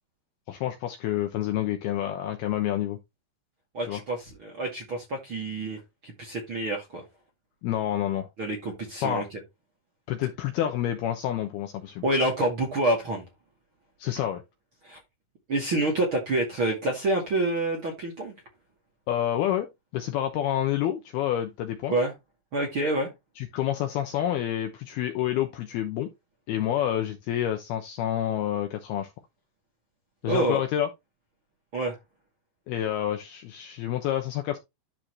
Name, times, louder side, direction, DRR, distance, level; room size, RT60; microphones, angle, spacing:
voice 1, 0.5-3.0 3.9-4.0 7.6-8.3 9.0-9.2 10.1-12.0 14.0-14.4 19.1-21.9 23.4-26.1 26.5-29.1 30.2-30.9 32.7-34.6, left 11 dB, 75° left, 2.4 m, -28 dB
voice 2, 3.7-7.0 8.4-9.2 12.0-13.2 14.8-15.0 15.5-18.3 21.9-22.1 22.5-23.1 30.2-30.6 31.7-32.0, right 1 dB, 40° right, 2.1 m, -27 dB
12.0 x 4.4 x 3.1 m
omnidirectional pair, 5.4 m